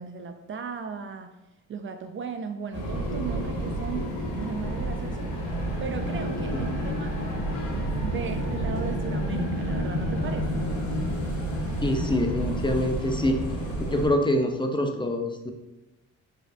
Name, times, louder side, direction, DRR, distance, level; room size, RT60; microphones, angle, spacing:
voice 1, 0.0-1.4 1.7-5.3 5.8-7.2 8.0-10.7, right 5 dB, 40° right, 7 dB, 0.4 m, -36 dB
sound 1, 2.7-14.1, right 1 dB, 80° left, 1.4 m, -29 dB
voice 2, 11.8-13.4 13.9-15.5, left 1 dB, 15° left, 4 dB, 0.5 m, -25 dB
4.6 x 4.3 x 2.6 m, 1.0 s
cardioid pair, 90°, 30 cm